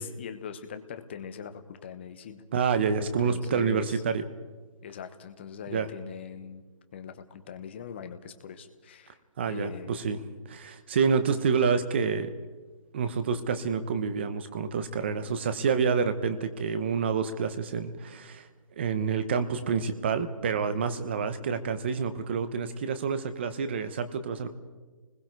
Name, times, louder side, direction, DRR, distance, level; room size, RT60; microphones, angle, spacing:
voice 1, 0.0-2.4 3.0-4.0 4.8-6.6 6.9-9.2 9.5-10.0, left 7 dB, 20° left, 9 dB, 1.0 m, -41 dB
voice 2, 2.5-4.2 5.7-5.9 9.4-10.2 10.5-12.3 12.9-18.5 18.8-24.5, right 6 dB, 20° right, 11 dB, 0.9 m, -28 dB
28.0 x 20.5 x 4.7 m, 1.3 s
hypercardioid pair, 170°, 17 cm